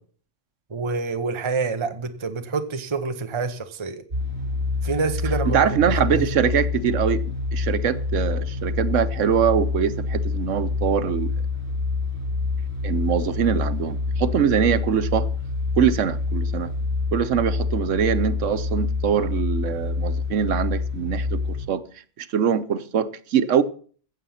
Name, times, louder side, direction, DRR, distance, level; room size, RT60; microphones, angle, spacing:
voice 1, 0.7-4.0 4.8-5.7 6.1-6.2, right 4 dB, 25° right, 0.9 m, -27 dB
sound 1, 4.1-21.7, left 3 dB, 60° right, 3.8 m, -26 dB
voice 2, 5.5-11.3 12.8-15.3 15.8-16.7 17.1-21.8 22.2-23.6, right 8 dB, 85° right, 1.2 m, -23 dB
15.0 x 7.6 x 5.6 m
omnidirectional pair, 1.2 m